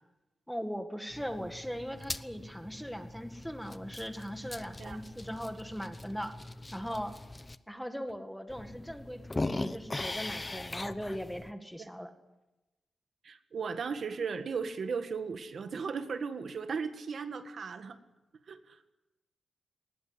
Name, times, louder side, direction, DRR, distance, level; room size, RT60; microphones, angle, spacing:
voice 1, 0.5-6.3 6.7-7.1 7.7-12.1, equal, ahead, 7 dB, 2.0 m, -39 dB
sound 1, 1.1-7.6 8.1-8.2 8.5-11.5, left 2 dB, 20° left, 0.8 m, -40 dB
voice 2, 13.2-18.0 18.5-18.8, right 5 dB, 60° right, 8 dB, 1.7 m, -36 dB
20.5 x 20.0 x 9.8 m, 1.0 s
wide cardioid pair, 145°, 0 cm